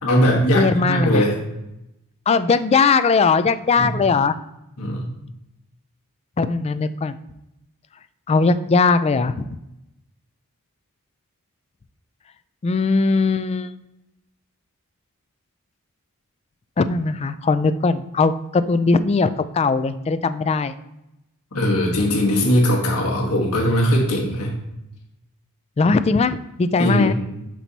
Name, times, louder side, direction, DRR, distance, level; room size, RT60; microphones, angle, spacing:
voice 1, 0.0-1.4 3.8-4.0 4.8-5.1 21.5-24.5 26.8-27.1, equal, 80° left, -2 dB, 1.4 m, -19 dB
voice 2, 0.5-1.2 2.3-4.3 6.4-7.2 8.3-9.5 12.6-13.7 16.8-20.7 25.8-27.1, left 4 dB, 30° left, 11 dB, 0.3 m, -19 dB
5.9 x 4.5 x 4.0 m, 0.88 s
head